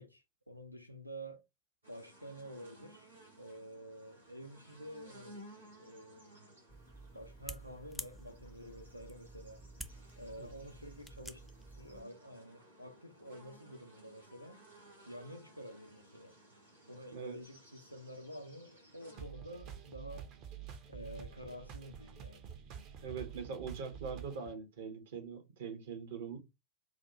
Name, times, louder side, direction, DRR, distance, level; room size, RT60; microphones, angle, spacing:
voice 1, 0.0-1.4 1.9-3.1 3.4-5.4 5.8-6.6 7.1-9.6 10.2-14.6 15.1-16.4 16.9-20.3 20.9-22.5, equal, 90° left, 0.6 m, -49 dB
sound 1, 1.8-19.2, right 1 dB, 80° right, 1.7 m, -59 dB
sound 2, 6.7-12.0, right 1 dB, ahead, 0.4 m, -50 dB
sound 3, 19.2-24.5, right 8 dB, 40° right, 0.7 m, -48 dB
voice 2, 23.0-26.4, right 6 dB, 60° right, 1.0 m, -42 dB
4.1 x 2.3 x 2.9 m
figure-of-eight pair, 90°, 0 cm